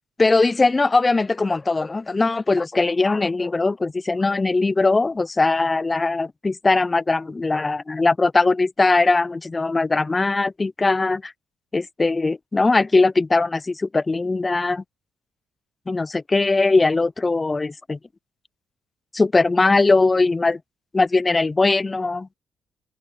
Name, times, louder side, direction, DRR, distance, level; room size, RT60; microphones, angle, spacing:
voice 1, 0.2-11.3 11.7-14.8 15.9-18.0 19.1-20.6 20.9-22.3, left 3 dB, 25° left, 0.4 m, -20 dB
open air
cardioid pair, 90°, 0 cm